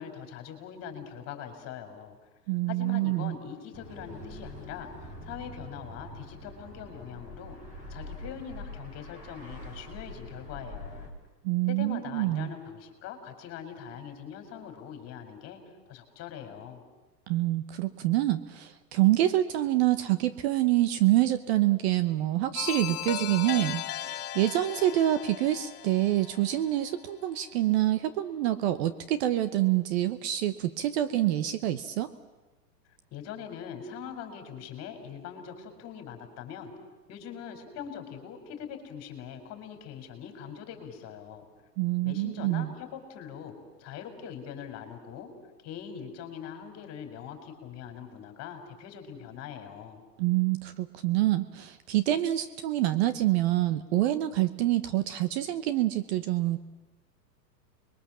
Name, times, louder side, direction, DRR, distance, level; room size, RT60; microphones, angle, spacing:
voice 1, 0.0-2.2 2.7-4.9 5.2-7.6 7.9-11.1 11.7-15.6 15.9-16.8 33.1-36.7 37.1-41.4 42.0-43.5 43.8-45.3 45.6-50.0, left 8 dB, 30° left, 6 dB, 4.7 m, -42 dB
voice 2, 2.5-3.3 11.4-12.5 17.3-32.1 41.8-42.7 50.2-56.6, right 14 dB, 40° right, 13 dB, 1.0 m, -26 dB
sound 1, 3.7-11.1, left 1 dB, 15° right, 4.7 m, -44 dB
sound 2, 22.6-27.3, left 13 dB, 65° left, 1.2 m, -37 dB
28.5 x 22.5 x 7.5 m, 1.1 s
hypercardioid pair, 140°, 50 cm